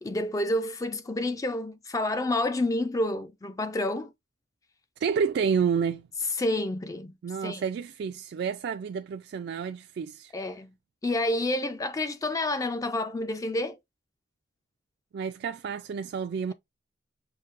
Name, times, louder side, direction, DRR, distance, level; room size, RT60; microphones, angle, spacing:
voice 1, 0.0-4.1 6.4-7.2 7.4-7.6 10.3-10.7 11.0-13.8, left 1 dB, 20° left, 0.3 m, -29 dB
voice 2, 5.0-6.1 7.2-10.3 15.1-16.5, right 6 dB, 60° right, 0.3 m, -29 dB
5.9 x 2.7 x 2.4 m
head